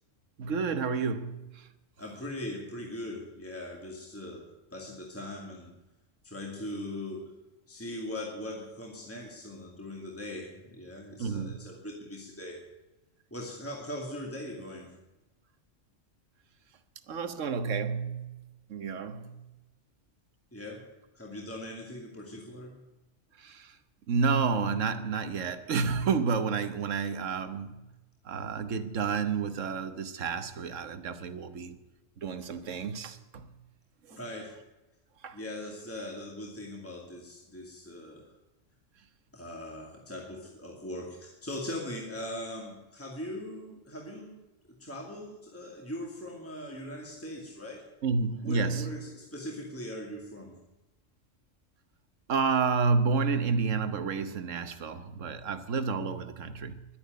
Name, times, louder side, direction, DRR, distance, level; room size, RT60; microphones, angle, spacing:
voice 1, 0.4-1.7 11.2-11.6 17.1-18.3 18.7-19.4 23.4-23.8 24.1-27.8 28.2-31.8 32.2-33.5 34.1-34.2 35.2-35.4 48.0-48.9 52.3-56.9, right 5 dB, 80° right, 1.4 m, -30 dB
voice 2, 2.0-5.7 6.2-7.3 7.7-12.6 13.3-14.9 20.5-20.9 21.1-22.8 34.1-34.6 35.3-38.3 39.3-44.4 44.7-47.8 48.4-50.6, left 1 dB, 10° left, 2.4 m, -40 dB
11.5 x 10.5 x 9.4 m
omnidirectional pair, 1.3 m